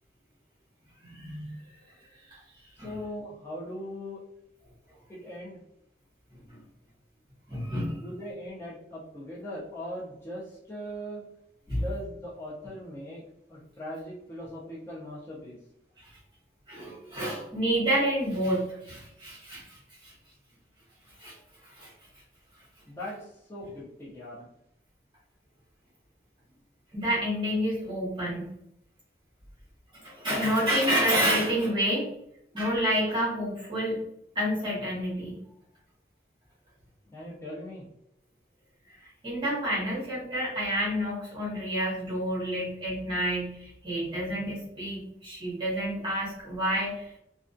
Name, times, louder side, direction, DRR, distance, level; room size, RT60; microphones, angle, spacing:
voice 1, 1.0-1.5 2.8-2.9 6.5-6.6 7.5-8.0 11.7-11.8 16.0-16.1 16.7-20.1 21.2-21.3 21.6-21.9 26.9-28.5 30.0-32.1 32.5-34.0 34.3-35.4 39.2-47.0, equal, 25° right, -8 dB, 0.9 m, -29 dB
voice 2, 2.8-4.2 5.1-5.6 8.0-11.2 11.7-13.2 13.5-15.6 22.9-24.5 37.1-37.9, equal, 15° left, -8 dB, 0.5 m, -40 dB
2.3 x 2.2 x 2.5 m, 0.80 s
head